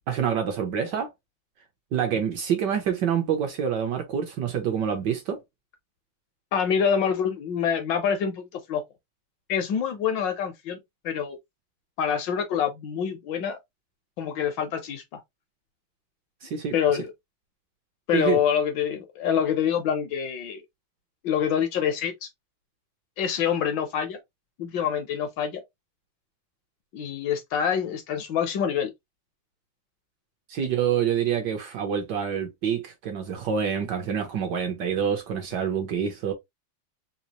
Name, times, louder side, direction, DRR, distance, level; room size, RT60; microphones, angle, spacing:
voice 1, 0.1-1.1 1.9-5.4 16.4-16.7 18.1-18.4 30.5-36.3, right 8 dB, 70° right, 1.1 m, -27 dB
voice 2, 6.5-8.8 9.5-10.8 11.0-11.4 12.0-13.6 14.2-15.2 16.7-17.0 18.1-20.6 21.2-22.3 23.2-24.2 24.6-25.6 26.9-28.9, left 8 dB, 70° left, 1.2 m, -26 dB
4.0 x 2.3 x 2.8 m
omnidirectional pair, 2.3 m